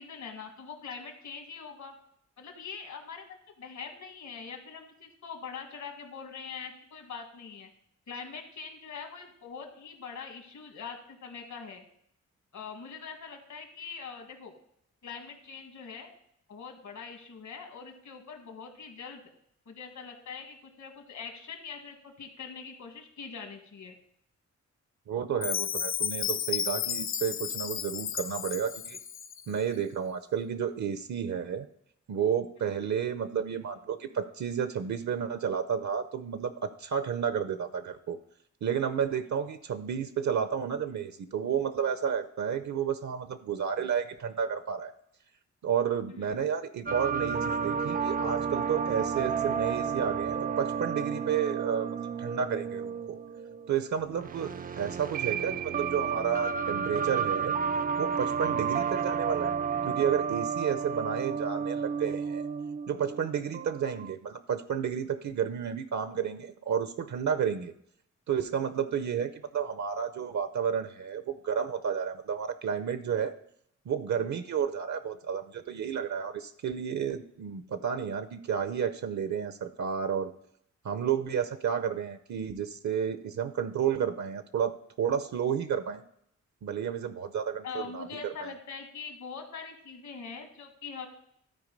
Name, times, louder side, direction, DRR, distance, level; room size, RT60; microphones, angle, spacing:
voice 1, 0.0-2.0 2.4-3.2 3.6-7.7 8.1-11.8 12.5-14.5 15.0-16.1 16.5-19.2 19.6-24.0 46.1-46.2 58.4-58.6 87.6-91.1, left 6 dB, 70° left, 4 dB, 1.7 m, -43 dB
voice 2, 25.1-29.0 29.5-31.7 32.1-38.2 38.6-44.9 45.6-53.2 53.7-57.5 58.0-59.5 59.9-62.5 62.9-67.7 68.3-73.3 73.9-80.3 80.8-86.0 86.6-88.5, right 7 dB, 65° right, 11 dB, 0.7 m, -31 dB
Chime, 25.4-29.5, left 8 dB, 45° left, 0.4 m, -33 dB
sound 1, 46.9-64.1, right 6 dB, 30° right, 0.4 m, -32 dB
13.0 x 4.5 x 5.2 m, 0.71 s
cardioid pair, 85°, 30 cm